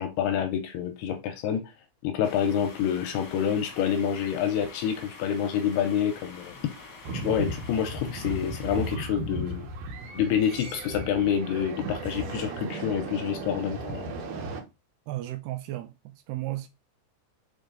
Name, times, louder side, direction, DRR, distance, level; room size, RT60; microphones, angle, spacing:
voice 1, 0.0-1.7 2.0-6.6 7.1-9.7 10.1-14.0, left 8 dB, 80° left, 2.4 m, -27 dB
sound 1, 2.2-9.0, left 3 dB, 40° left, 1.6 m, -46 dB
sound 2, 7.1-14.6, right 2 dB, 65° right, 2.3 m, -35 dB
voice 2, 15.1-16.7, right 16 dB, 80° right, 2.5 m, -34 dB
5.5 x 5.3 x 3.8 m
omnidirectional pair, 5.0 m